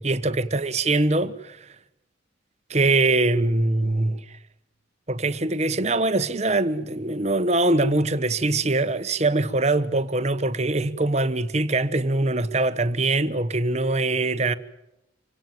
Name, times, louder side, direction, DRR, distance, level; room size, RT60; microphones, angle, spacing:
voice 1, 0.0-1.7 2.7-4.4 5.1-14.5, right 2 dB, 35° right, 1.1 m, -23 dB
26.0 x 18.0 x 9.3 m
head